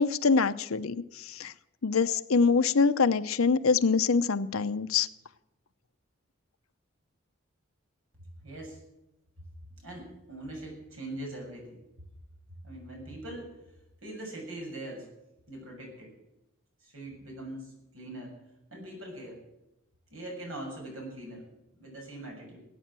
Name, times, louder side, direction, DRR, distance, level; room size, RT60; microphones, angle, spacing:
voice 1, 0.0-1.5 1.8-5.1, left 5 dB, 80° left, 11 dB, 0.7 m, -25 dB
voice 2, 8.2-8.8 9.8-11.8 12.5-13.5 14.0-15.1 15.5-16.1 16.8-18.3 18.7-19.4 20.1-21.4 21.7-22.6, right 1 dB, 75° right, 0 dB, 6.9 m, -42 dB
17.0 x 9.2 x 7.5 m, 0.92 s
head